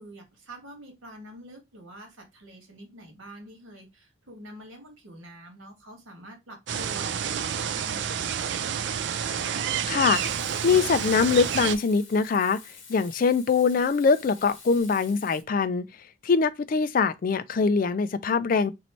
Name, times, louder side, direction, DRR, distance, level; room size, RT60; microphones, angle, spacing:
voice 1, 0.0-9.0, right 1 dB, 80° right, 1.7 m, -46 dB
sound 1, 6.7-11.8, right 8 dB, 60° right, 0.4 m, -29 dB
voice 2, 9.9-10.2 10.6-12.6 12.9-15.9 16.2-18.7, left 5 dB, 45° left, 0.3 m, -23 dB
Frying (food), 10.1-15.4, left 5 dB, 70° left, 1.2 m, -48 dB
3.0 x 2.7 x 4.3 m
head